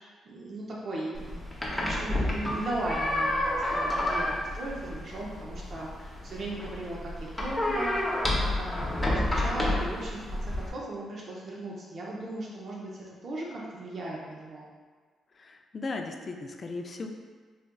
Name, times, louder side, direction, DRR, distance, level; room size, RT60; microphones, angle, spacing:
voice 1, 0.2-1.5 1.8-14.7, right 1 dB, 55° right, -4 dB, 0.6 m, -37 dB
sound 1, 1.2-10.7, left 1 dB, 10° left, 0.8 m, -30 dB
voice 2, 15.4-17.1, left 3 dB, 40° left, 3 dB, 0.3 m, -37 dB
4.1 x 2.4 x 2.2 m, 1.5 s
cardioid pair, 80°, 0 cm